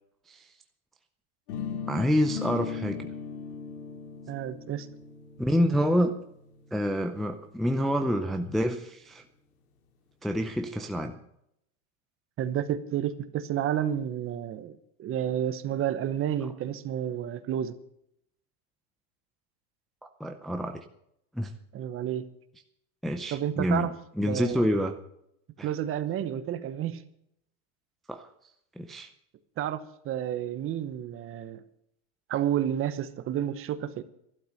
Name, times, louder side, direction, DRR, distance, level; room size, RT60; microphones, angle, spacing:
sound 1, 1.5-7.4, left 6 dB, 85° left, 2.3 m, -39 dB
voice 1, 1.9-3.1 5.4-6.1 6.7-9.2 10.2-11.1 20.2-20.8 21.3-21.5 23.0-23.9 24.2-24.9 25.6-25.7 28.1-28.3 28.8-29.1, equal, ahead, 5 dB, 0.6 m, -27 dB
voice 2, 4.3-4.9 12.4-17.8 21.7-22.2 23.3-23.9 24.3-24.7 25.6-27.0 29.6-31.6 32.3-34.0, right 10 dB, 30° right, 13 dB, 1.0 m, -30 dB
12.0 x 12.0 x 6.5 m, 0.75 s
supercardioid pair, 135°, 45 cm